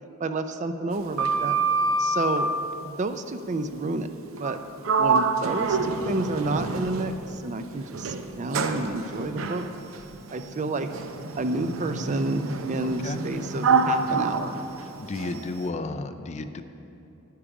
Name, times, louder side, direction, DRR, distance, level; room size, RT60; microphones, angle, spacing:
voice 1, 0.2-1.6 2.0-2.5 2.8-4.1 4.4-4.6 5.0-9.6 10.3-10.9 11.4-14.6, right 2 dB, 35° right, 9 dB, 0.5 m, -30 dB
Sliding door, 0.9-2.5 4.4-4.6 4.8-7.3 7.9-15.4, right 4 dB, 75° right, 0.6 m, -27 dB
voice 2, 12.8-13.2 15.0-16.6, left 3 dB, 35° left, 9 dB, 0.4 m, -33 dB
10.5 x 10.0 x 4.8 m, 2.9 s
head